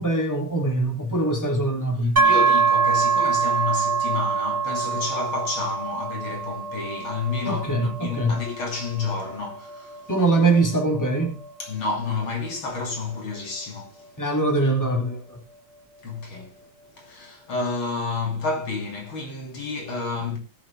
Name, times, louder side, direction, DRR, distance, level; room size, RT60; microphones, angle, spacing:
voice 1, 0.0-2.2 7.4-8.4 10.1-11.4 14.2-15.4, right 2 dB, 10° left, 3.2 m, -23 dB
voice 2, 2.2-10.1 11.6-14.1 16.0-16.6 16.9-20.4, left 4 dB, 80° left, 3.7 m, -30 dB
sound 1, 2.2-15.8, right 5 dB, 30° right, 2.0 m, -26 dB
19.5 x 7.4 x 3.6 m
omnidirectional pair, 2.2 m